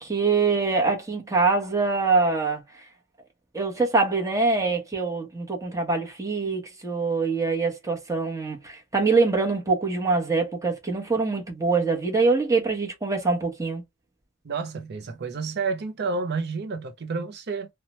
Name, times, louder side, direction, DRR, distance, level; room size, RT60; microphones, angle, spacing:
voice 1, 0.0-2.6 3.5-13.8, right 4 dB, 15° right, 1.0 m, -24 dB
voice 2, 14.4-17.7, right 4 dB, 55° right, 0.5 m, -30 dB
2.7 x 2.2 x 2.9 m
head